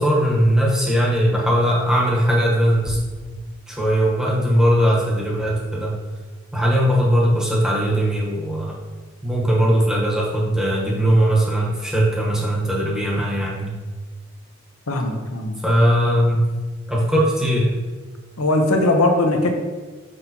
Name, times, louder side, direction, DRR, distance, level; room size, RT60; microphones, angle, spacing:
voice 1, 0.0-3.0 3.7-5.9 6.5-8.8 9.2-13.7 15.6-16.5 16.9-17.7, equal, 5° right, -5 dB, 1.1 m, -19 dB
voice 2, 14.9-15.6 18.4-19.5, left 2 dB, 85° left, 2 dB, 0.8 m, -19 dB
6.5 x 5.3 x 2.9 m, 1.3 s
head